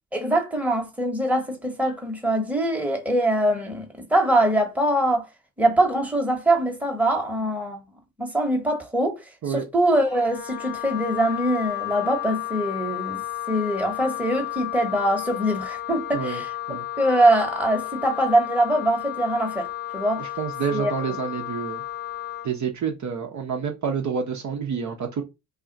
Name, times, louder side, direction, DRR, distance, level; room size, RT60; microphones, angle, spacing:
voice 1, 0.1-5.3 5.6-7.8 8.2-13.2 13.5-16.5 17.0-19.7 19.9-20.3 20.7-20.9, right 1 dB, 5° right, 1.0 m, -23 dB
Wind instrument woodwind instrument, 10.0-22.5, left 14 dB, 25° left, 0.7 m, -33 dB
voice 2, 20.2-21.8 22.4-25.2, right 6 dB, 40° right, 0.7 m, -28 dB
2.5 x 2.3 x 3.8 m
supercardioid pair, 60°, 43 cm